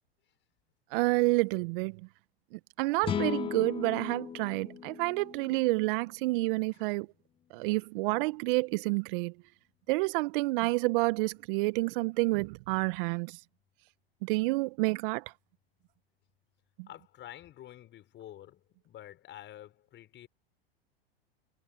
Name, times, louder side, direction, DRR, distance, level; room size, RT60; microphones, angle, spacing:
voice 1, 0.9-2.0 2.5-7.1 7.5-9.3 9.9-13.3 14.2-15.2 16.8-16.9, right 23 dB, 55° right, 1.3 m, -29 dB
sound 1, 3.0-6.3, left 9 dB, 20° left, 0.5 m, -37 dB
voice 2, 16.9-20.3, left 12 dB, 35° left, 6.4 m, -49 dB
hypercardioid pair, 100°, 31 cm